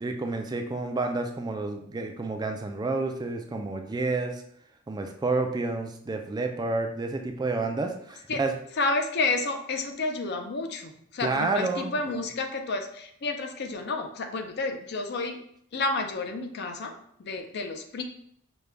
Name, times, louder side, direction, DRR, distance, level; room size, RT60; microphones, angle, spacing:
voice 1, 0.0-4.4 4.9-8.5 11.2-12.2, right 3 dB, 20° right, 5 dB, 0.3 m, -29 dB
voice 2, 8.8-15.4 15.7-18.0, left 3 dB, 55° left, 5 dB, 0.5 m, -30 dB
5.1 x 2.2 x 3.3 m, 0.69 s
head